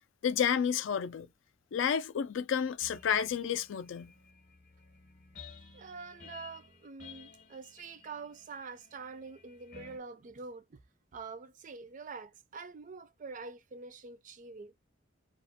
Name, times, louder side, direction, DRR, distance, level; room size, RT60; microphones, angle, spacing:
voice 1, 0.2-1.3 1.7-4.1, left 8 dB, 70° left, 0.4 m, -30 dB
sound 1, 2.8-10.0, left 5 dB, 45° left, 0.7 m, -55 dB
voice 2, 5.7-10.8 11.1-14.7, right 4 dB, 40° right, 0.4 m, -46 dB
2.4 x 2.1 x 2.6 m
head